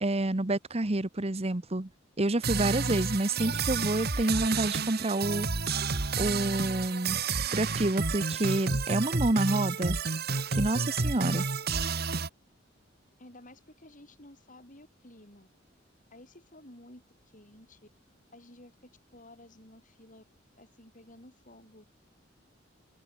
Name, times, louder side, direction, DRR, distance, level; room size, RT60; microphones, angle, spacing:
voice 1, 0.0-1.9 2.2-5.5 6.2-7.2 7.4-10.0 10.5-11.5, right 2 dB, 30° right, 1.1 m, -28 dB
sound 1, 2.4-12.3, right 4 dB, 55° right, 1.7 m, -30 dB
voice 2, 13.2-15.5 16.1-17.0 17.3-17.9 18.3-20.2 20.6-21.9, left 1 dB, 40° left, 7.5 m, -53 dB
open air
head